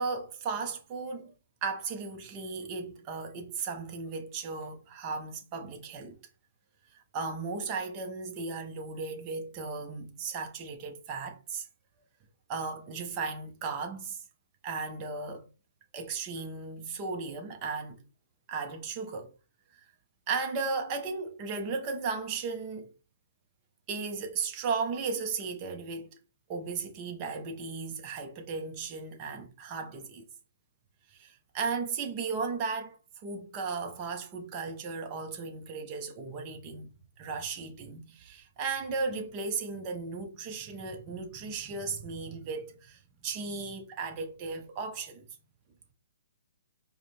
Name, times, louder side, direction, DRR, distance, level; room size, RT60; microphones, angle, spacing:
voice 1, 0.0-1.3 1.6-6.2 6.9-11.7 12.5-14.2 14.6-15.5 15.9-18.0 18.5-19.3 19.7-19.8 20.3-22.9 23.9-26.1 26.5-30.2 31.1-36.9 37.2-45.3, right 4 dB, 25° right, 0.9 m, -36 dB
4.8 x 2.3 x 3.3 m
hypercardioid pair, 155°, 0 cm